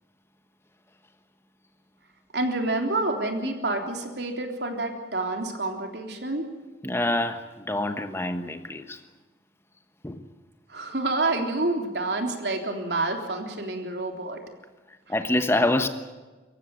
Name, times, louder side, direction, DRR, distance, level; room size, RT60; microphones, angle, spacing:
voice 1, 2.3-6.5 10.7-14.4, right 2 dB, 70° right, 4 dB, 3.6 m, -28 dB
voice 2, 6.8-9.0 10.0-10.2 15.1-15.9, left 1 dB, 15° left, 8 dB, 1.2 m, -26 dB
25.5 x 15.0 x 9.5 m, 1.2 s
head